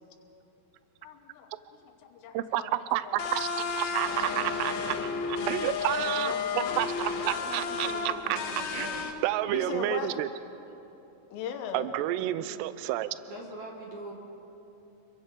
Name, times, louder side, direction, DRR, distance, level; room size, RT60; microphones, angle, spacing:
voice 1, 1.0-1.5 1.8-2.7 3.0-3.5 3.9-4.5 6.2-6.8 9.5-10.1 11.3-11.9, left 8 dB, 85° left, 4 dB, 3.9 m, -39 dB
voice 2, 2.3-8.4 8.7-10.3 11.7-13.1, right 14 dB, 85° right, 13 dB, 2.4 m, -30 dB
sound 1, 3.2-9.1, left 5 dB, 70° left, 3.7 m, -32 dB
voice 3, 7.2-9.0 12.3-12.6 13.3-14.1, right 2 dB, 55° right, -1 dB, 2.3 m, -43 dB
29.0 x 23.0 x 5.3 m, 2.9 s
omnidirectional pair, 5.8 m